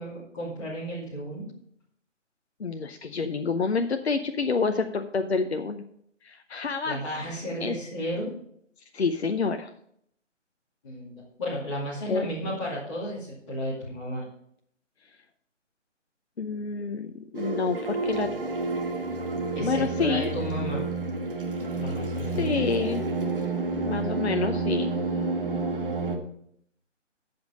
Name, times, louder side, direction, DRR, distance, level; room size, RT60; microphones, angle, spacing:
voice 1, 0.0-1.4 6.8-8.3 10.8-14.2 19.5-20.9 21.8-22.7, equal, 25° left, -7 dB, 2.5 m, -33 dB
voice 2, 2.6-5.8 6.2-7.0 7.6-7.8 8.9-9.7 12.1-12.3 16.4-18.3 19.6-20.3 22.4-23.0 23.9-24.9, left 4 dB, 60° left, 7 dB, 0.8 m, -28 dB
sound 1, 17.3-26.2, right 3 dB, 45° right, 1.6 m, -29 dB
13.5 x 5.3 x 5.2 m, 0.68 s
figure-of-eight pair, 160°, 37 cm